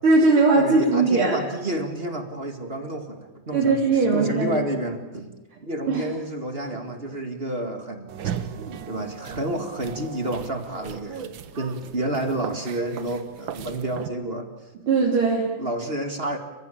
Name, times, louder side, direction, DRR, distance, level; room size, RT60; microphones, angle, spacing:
voice 1, 0.0-1.4 3.5-4.6 5.9-6.1 14.9-15.5, right 3 dB, 90° right, -3 dB, 4.1 m, -19 dB
voice 2, 0.6-5.3 5.6-8.1 8.6-14.5 15.6-16.4, right 1 dB, 30° right, 6 dB, 2.1 m, -30 dB
sound 1, 8.1-14.1, right 8 dB, 70° right, 1.9 m, -36 dB
29.5 x 16.0 x 8.7 m, 1.2 s
omnidirectional pair, 2.3 m